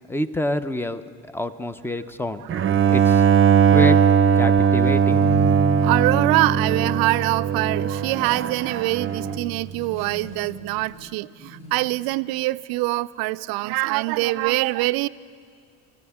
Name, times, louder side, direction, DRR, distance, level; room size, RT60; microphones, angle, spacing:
voice 1, 0.1-2.4 2.9-3.2 3.7-4.0 4.4-5.2, left 1 dB, 5° left, 13 dB, 0.6 m, -27 dB
Bowed string instrument, 2.5-9.5, right 7 dB, 30° right, 0.7 m, -19 dB
sound 1, 5.1-8.8, right 1 dB, 30° left, 5.2 m, -30 dB
voice 2, 5.8-15.1, right 20 dB, 60° right, 16 dB, 0.5 m, -24 dB
sound 2, 8.0-12.0, left 1 dB, 55° left, 2.6 m, -43 dB
24.5 x 14.5 x 3.6 m, 2.1 s
hypercardioid pair, 80°, 42 cm